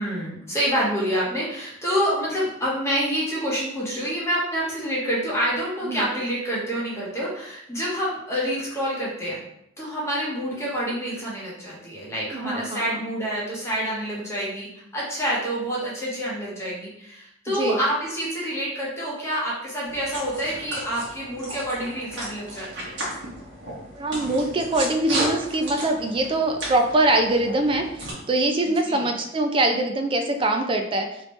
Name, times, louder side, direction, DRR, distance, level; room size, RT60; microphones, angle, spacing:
voice 1, 0.0-9.4 9.8-22.9 28.6-29.1, equal, 15° left, -6 dB, 0.9 m, -27 dB
voice 2, 12.3-13.0 17.6-17.8 23.9-27.8 28.3-31.1, right 2 dB, 25° right, 5 dB, 0.3 m, -23 dB
sound 1, 19.8-28.1, right 1 dB, 60° right, 1.2 m, -34 dB
3.1 x 2.8 x 3.1 m, 0.81 s
head